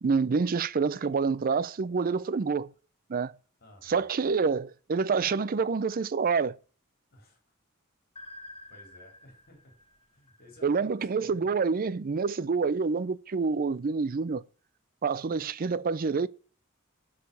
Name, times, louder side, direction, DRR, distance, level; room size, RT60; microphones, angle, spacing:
voice 1, 0.0-2.7 3.1-3.3 3.9-6.6 10.6-14.4 15.0-16.3, right 5 dB, 45° right, 0.5 m, -27 dB
voice 2, 3.6-4.1 7.1-7.4 8.7-9.7 10.1-11.5, left 1 dB, 50° left, 3.9 m, -55 dB
sound 1, 8.2-11.1, left 1 dB, 25° left, 1.1 m, -50 dB
10.5 x 4.9 x 6.9 m
head